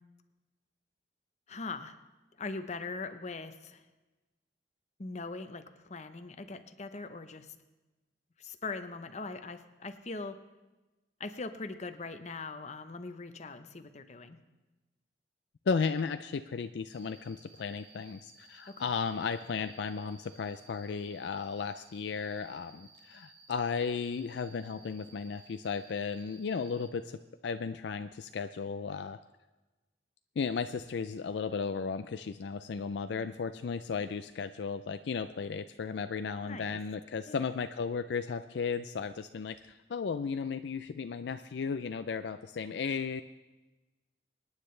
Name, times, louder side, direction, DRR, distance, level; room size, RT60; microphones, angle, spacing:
voice 1, 1.5-2.0 2.4-3.8 5.0-7.5 8.4-10.4 11.2-14.4 18.7-18.8 36.4-36.8 37.3-37.5, left 3 dB, 40° left, 9 dB, 0.8 m, -41 dB
voice 2, 15.7-27.2 27.4-29.2 30.4-43.2, left 5 dB, 65° left, 10 dB, 0.4 m, -35 dB
Cricket, 16.9-26.9, right 3 dB, 30° right, 4.7 m, -58 dB
25.0 x 9.7 x 3.3 m, 1.1 s
head